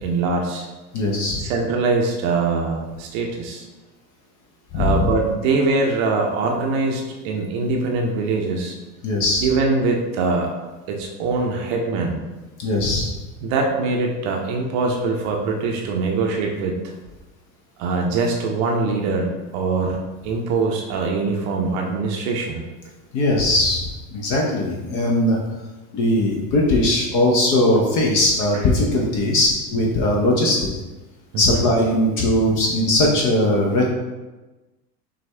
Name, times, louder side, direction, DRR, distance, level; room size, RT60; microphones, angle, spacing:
voice 1, 0.0-0.7 1.4-3.7 4.7-8.7 9.4-10.5 10.9-12.2 13.4-16.9 17.8-20.0 20.2-22.6 31.3-31.6, right 3 dB, 45° right, 1 dB, 0.7 m, -23 dB
voice 2, 0.9-1.4 4.7-5.0 9.0-9.5 12.6-13.1 23.1-25.4 25.9-30.7 31.4-33.9, left 1 dB, 40° left, -1 dB, 0.8 m, -19 dB
6.0 x 2.3 x 3.3 m, 1.2 s
figure-of-eight pair, 85°, 49 cm